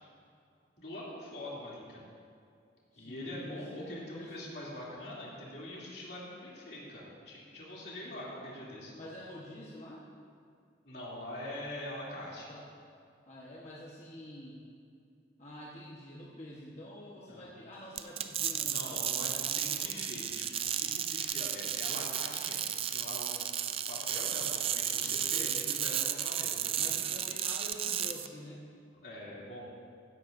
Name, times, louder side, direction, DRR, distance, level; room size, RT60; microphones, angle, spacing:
voice 1, 0.8-2.0 3.0-8.9 10.8-12.5 17.3-17.5 18.6-23.5 23.9-27.0 29.0-29.7, left 1 dB, 65° left, -6 dB, 2.9 m, -44 dB
voice 2, 2.9-4.3 8.1-8.2 8.6-10.0 12.5-12.7 13.3-14.6 15.4-19.1 25.2-26.0 26.8-28.6, left 1 dB, 40° left, -6 dB, 1.2 m, -47 dB
sound 1, 17.9-28.3, right 10 dB, 30° right, 0.3 m, -33 dB
15.5 x 11.5 x 2.6 m, 2.4 s
head